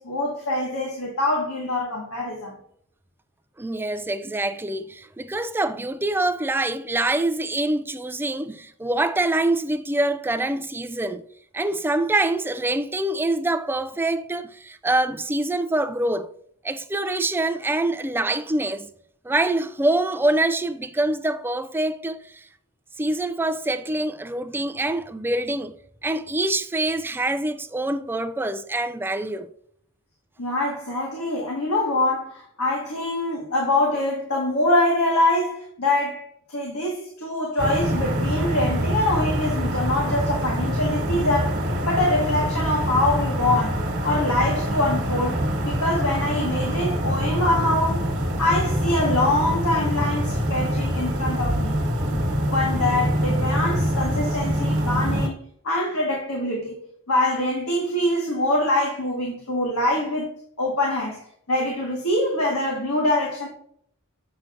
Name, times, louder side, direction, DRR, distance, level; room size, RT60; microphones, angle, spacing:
voice 1, 0.0-2.5 30.4-48.1 48.4-51.8 52.1-55.4 55.6-56.8 57.1-60.3 60.6-61.2 61.5-63.5, left 1 dB, 85° left, 1.6 m, -24 dB
voice 2, 3.6-11.3 11.5-16.3 16.6-18.9 19.2-22.5 23.0-25.7 26.0-29.5, right 2 dB, 10° right, 0.4 m, -25 dB
sound 1, 37.6-55.3, equal, 55° right, 1.5 m, -25 dB
7.5 x 6.0 x 2.5 m
head